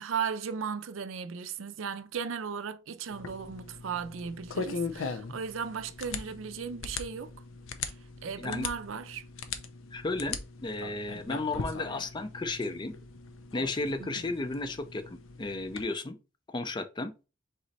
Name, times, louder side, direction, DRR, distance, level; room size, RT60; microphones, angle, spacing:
voice 1, 0.0-7.3 8.2-9.2 14.0-14.2, right 6 dB, 85° right, 0.5 m, -36 dB
sound 1, 3.1-15.9, left 5 dB, 85° left, 0.6 m, -40 dB
voice 2, 9.9-12.9 13.5-16.2 16.5-17.1, left 2 dB, 25° left, 0.4 m, -34 dB
4.0 x 3.0 x 4.0 m
head